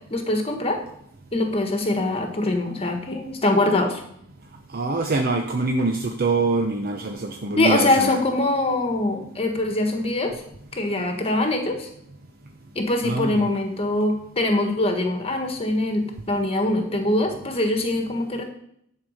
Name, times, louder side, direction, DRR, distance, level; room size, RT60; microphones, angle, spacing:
voice 1, 0.1-0.8 1.3-4.0 7.6-10.3 10.7-11.9 12.7-18.4, left 2 dB, 30° left, 4 dB, 1.5 m, -23 dB
voice 2, 4.7-8.2 13.0-13.5, right 3 dB, 45° right, 3 dB, 0.7 m, -24 dB
10.5 x 4.6 x 6.5 m, 0.72 s
head